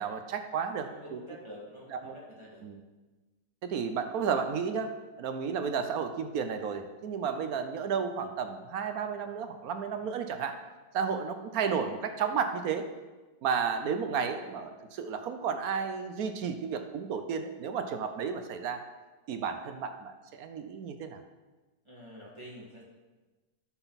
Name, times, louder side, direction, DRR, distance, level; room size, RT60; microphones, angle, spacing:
voice 1, 0.0-1.2 1.9-2.1 2.6-2.8 3.6-4.9 5.2-10.6 10.9-12.9 13.4-18.8 19.3-21.2, right 6 dB, 70° right, 8 dB, 1.1 m, -32 dB
voice 2, 0.8-2.7 21.8-22.8, equal, 20° right, -5 dB, 2.1 m, -47 dB
9.9 x 5.9 x 4.0 m, 1.2 s
omnidirectional pair, 1.7 m